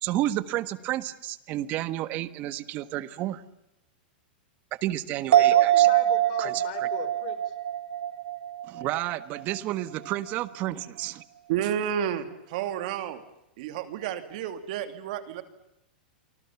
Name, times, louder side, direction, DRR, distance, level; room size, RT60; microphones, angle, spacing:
voice 1, 0.0-3.4 4.8-5.9 6.4-6.9 8.7-11.2, right 14 dB, 30° right, 14 dB, 1.5 m, -31 dB
voice 2, 5.3-7.5, left 10 dB, 50° left, 12 dB, 4.8 m, -38 dB
sound 1, 5.3-9.0 9.4-9.5, right 13 dB, 85° right, 2.3 m, -23 dB
voice 3, 11.5-13.2 13.6-15.4, right 9 dB, 50° right, 10 dB, 2.6 m, -31 dB
30.0 x 25.0 x 7.2 m, 0.86 s
supercardioid pair, 160°, 5 cm